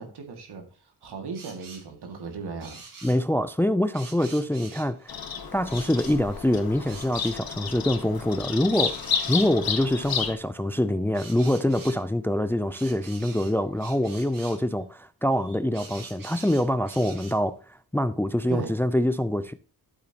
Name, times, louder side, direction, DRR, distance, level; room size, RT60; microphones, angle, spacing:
voice 1, 0.0-2.8 18.5-18.8, right 4 dB, 80° right, 2.3 m, -37 dB
sound 1, 1.3-1.9 2.6-3.2 3.9-5.1 5.7-6.4 6.8-7.7 8.7-10.3 11.1-12.0 12.7-14.6 15.3-17.4, right 4 dB, 55° right, 1.9 m, -46 dB
voice 2, 3.0-5.2 5.5-9.0 9.3-19.5, left 1 dB, 5° left, 0.4 m, -25 dB
Bird vocalization bird call bird song, 5.1-10.3, left 7 dB, 65° left, 1.4 m, -31 dB
12.0 x 8.3 x 2.9 m
cardioid pair, 90°, 39 cm